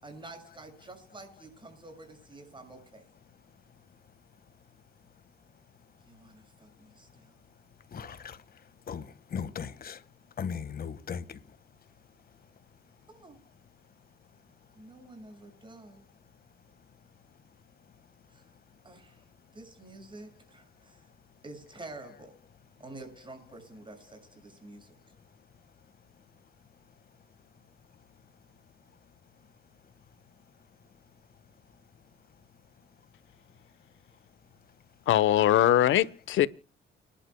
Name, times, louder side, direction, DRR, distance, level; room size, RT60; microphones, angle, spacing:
voice 1, 0.0-3.1 6.1-7.4 13.1-13.4 14.7-16.1 18.3-18.5 18.8-19.2 19.5-21.0 21.4-22.3 22.8-25.0, right 2 dB, 25° right, 6.8 m, -48 dB
voice 2, 7.9-8.6 8.9-10.0 10.4-11.6, left 7 dB, 50° left, 1.6 m, -38 dB
voice 3, 35.1-36.5, left 12 dB, 75° left, 0.9 m, -22 dB
30.0 x 11.5 x 2.2 m
cardioid pair, 90°, 20 cm